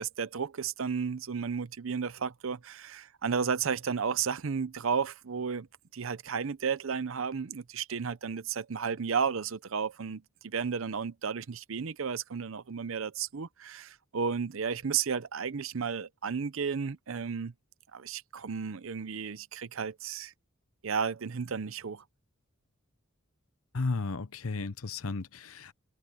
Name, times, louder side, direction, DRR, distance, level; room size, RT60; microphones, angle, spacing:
voice 1, 0.0-5.7 5.9-17.5 17.9-20.3 20.8-22.0, right 6 dB, 65° right, 0.6 m, -33 dB
voice 2, 23.7-25.7, left 3 dB, 85° left, 0.9 m, -34 dB
head